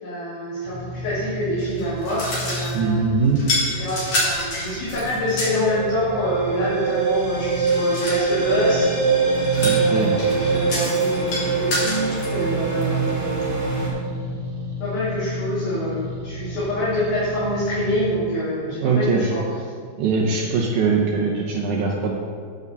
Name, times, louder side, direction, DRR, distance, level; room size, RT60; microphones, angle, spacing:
voice 1, 0.0-3.2 3.8-8.9 9.7-13.5 14.8-19.4, equal, 75° left, -11 dB, 4.2 m, -26 dB
sound 1, 0.6-18.2, equal, 60° right, 3.0 m, -34 dB
sound 2, 1.6-2.9 3.4-5.7 7.6-8.2 9.3-12.3, left 1 dB, 55° left, 3.6 m, -28 dB
voice 2, 2.7-3.4 9.6-10.2 18.7-19.2 20.0-22.1, right 4 dB, 80° right, -2 dB, 1.8 m, -22 dB
sound 3, 5.2-13.9, right 4 dB, 10° right, 0.7 m, -23 dB
9.3 x 4.9 x 6.8 m, 2.1 s
omnidirectional pair, 4.4 m